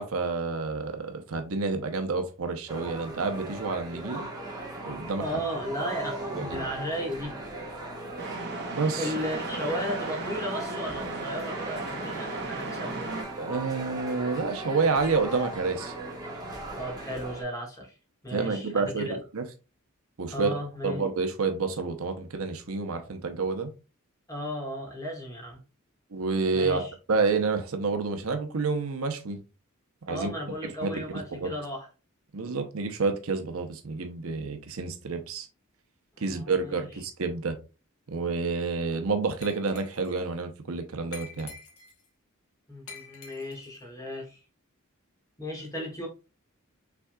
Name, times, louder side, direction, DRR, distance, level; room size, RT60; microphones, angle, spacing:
voice 1, 0.0-4.3 4.9-5.2 6.3-6.6 8.7-9.1 13.4-15.9 18.3-19.4 20.2-20.5 20.8-23.7 26.1-26.8 27.1-29.4 30.1-30.3 30.6-30.9 31.4-31.5 32.3-35.5 36.2-37.6 38.1-41.5, right 4 dB, 70° right, 0.7 m, -29 dB
sound 1, 2.7-17.4, right 2 dB, 20° right, 1.2 m, -38 dB
voice 2, 5.2-7.3 9.0-13.0 16.7-17.9 18.2-19.2 20.3-21.0 24.3-25.6 26.5-26.9 30.1-31.9 36.2-36.9 42.7-44.4 45.4-46.1, equal, 15° left, 1.6 m, -35 dB
sound 2, 8.2-13.2, right 3 dB, 50° right, 1.3 m, -36 dB
Glass, 39.4-40.2 41.1-42.1 42.9-43.8, left 5 dB, 85° left, 1.2 m, -47 dB
5.9 x 3.7 x 2.3 m
head